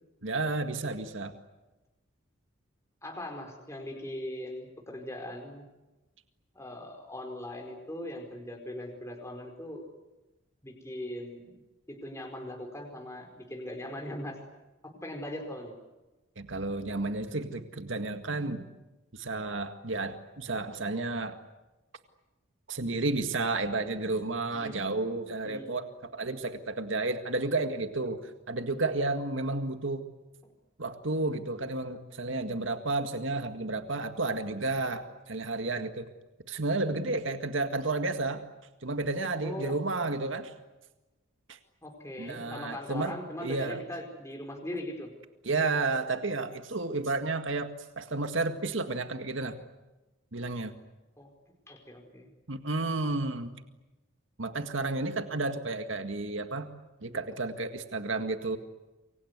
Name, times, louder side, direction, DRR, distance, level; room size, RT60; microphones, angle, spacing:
voice 1, 0.2-1.3 16.4-18.6 19.1-21.4 22.7-25.9 26.1-30.1 30.8-36.1 36.5-38.4 38.8-40.5 41.5-41.6 42.2-43.1 43.4-43.8 45.4-49.6 50.3-50.7 52.5-53.5 54.4-56.7 57.0-58.6, right 3 dB, 70° right, 7 dB, 1.9 m, -31 dB
voice 2, 3.0-5.6 6.5-9.8 10.6-11.5 11.9-14.4 14.8-15.7 24.5-24.8 25.4-25.7 39.4-39.8 41.8-45.1 51.2-51.3 51.7-52.3, left 1 dB, 15° left, 2 dB, 4.7 m, -40 dB
28.0 x 24.5 x 8.2 m, 1.1 s
head